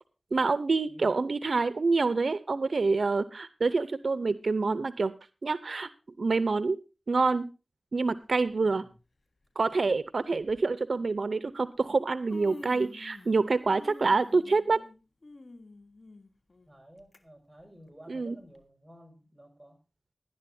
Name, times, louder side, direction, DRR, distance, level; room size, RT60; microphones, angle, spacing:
voice 1, 0.3-5.1 5.4-5.9 6.2-6.8 7.1-7.5 7.9-8.8 9.6-14.8 18.1-18.4, right 3 dB, 80° right, 15 dB, 0.7 m, -27 dB
voice 2, 0.8-1.2 8.6-9.0 16.7-19.8, equal, 10° right, 3 dB, 5.9 m, -53 dB
Human voice, 8.4-8.7 9.7-9.8 10.4-10.6 11.6-11.7 12.0-13.4 13.7-17.2 17.6-17.7 18.5-18.6, left 2 dB, 65° left, 1.5 m, -48 dB
18.5 x 11.5 x 2.7 m, 0.30 s
wide cardioid pair, 60°, 0 cm